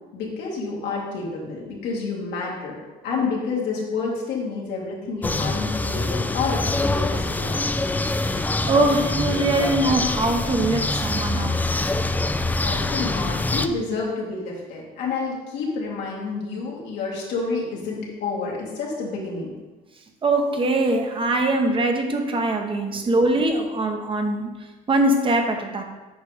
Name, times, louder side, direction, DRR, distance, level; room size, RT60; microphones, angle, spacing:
voice 1, 0.1-2.8 3.0-7.5 12.6-19.5 22.9-23.0, left 4 dB, 85° left, -3 dB, 2.0 m, -29 dB
sound 1, 5.2-13.7, left 2 dB, 10° left, 0.3 m, -24 dB
voice 2, 8.0-11.5 20.2-24.5 24.9-25.8, right 2 dB, 30° right, 4 dB, 0.8 m, -22 dB
8.0 x 5.1 x 3.4 m, 1.2 s
cardioid pair, 110°, 17 cm